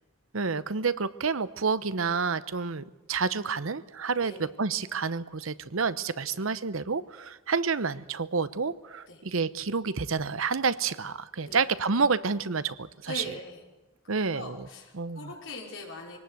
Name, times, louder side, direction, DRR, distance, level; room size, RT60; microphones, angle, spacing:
voice 1, 0.3-13.2 14.1-14.7 14.9-15.3, right 5 dB, 75° right, 15 dB, 0.9 m, -29 dB
voice 2, 13.1-13.6 14.1-16.2, left 1 dB, 65° left, 0 dB, 5.2 m, -41 dB
23.5 x 18.5 x 8.0 m, 1.0 s
head